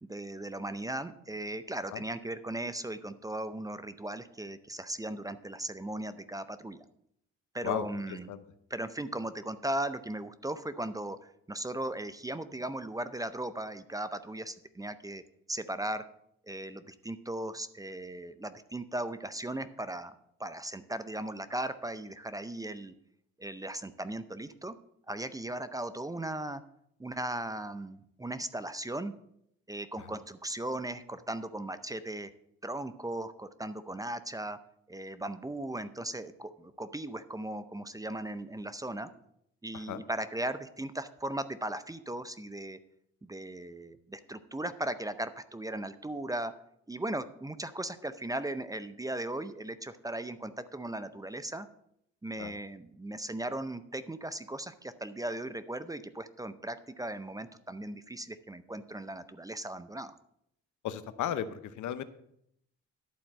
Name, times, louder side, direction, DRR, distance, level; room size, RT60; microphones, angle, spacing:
voice 1, 0.0-6.8 7.5-8.3 8.7-15.2 15.5-16.0 16.4-20.1 20.4-22.9 23.4-24.8 25.1-26.6 27.0-29.1 29.7-32.3 32.6-34.6 34.9-39.1 39.6-42.8 43.2-46.5 46.9-51.7 52.2-60.2, right 1 dB, 10° right, 12 dB, 0.6 m, -37 dB
voice 2, 7.6-8.4 30.0-30.1 39.7-40.0 52.4-52.6 60.8-62.0, left 10 dB, 75° left, 12 dB, 0.8 m, -36 dB
11.5 x 4.4 x 7.4 m, 0.74 s
cardioid pair, 90°, 30 cm